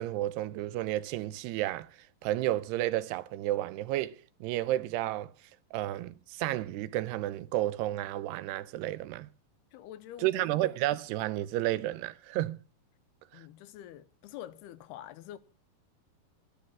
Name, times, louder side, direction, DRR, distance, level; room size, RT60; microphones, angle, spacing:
voice 1, 0.0-1.9 2.2-5.3 5.7-9.3 10.2-12.6, right 14 dB, 85° right, 2.9 m, -31 dB
voice 2, 9.7-10.5 13.3-15.4, left 12 dB, 80° left, 2.8 m, -46 dB
14.0 x 12.0 x 6.0 m
omnidirectional pair, 4.6 m